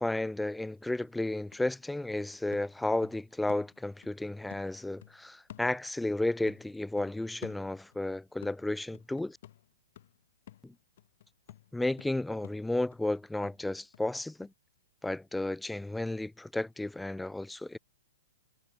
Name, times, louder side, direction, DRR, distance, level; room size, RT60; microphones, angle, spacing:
voice 1, 0.0-9.4 10.6-10.7 11.7-14.5 15.0-17.8, left 2 dB, 5° left, 0.4 m, -33 dB
sound 1, 0.6-0.7 1.0-4.2 4.5-6.2 6.5-8.1 8.4-14.1 14.4-14.5, left 13 dB, 60° left, 1.2 m, -53 dB
hypercardioid pair, 145°, 0 cm